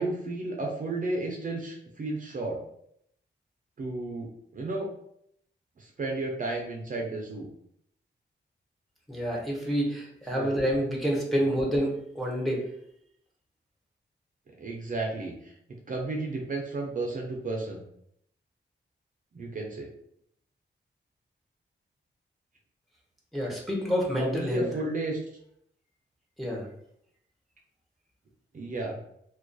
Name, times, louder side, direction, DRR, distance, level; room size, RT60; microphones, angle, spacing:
voice 1, 0.0-2.6 3.8-4.9 5.8-7.5 10.3-10.7 14.6-15.5 15.9-17.8 19.3-19.9 24.2-25.2 28.5-29.0, right 2 dB, 45° right, -1 dB, 0.4 m, -33 dB
voice 2, 9.1-12.6 23.3-24.7 26.4-26.7, equal, ahead, -2 dB, 0.6 m, -28 dB
2.2 x 2.2 x 2.5 m, 0.72 s
wide cardioid pair, 120°, 19 cm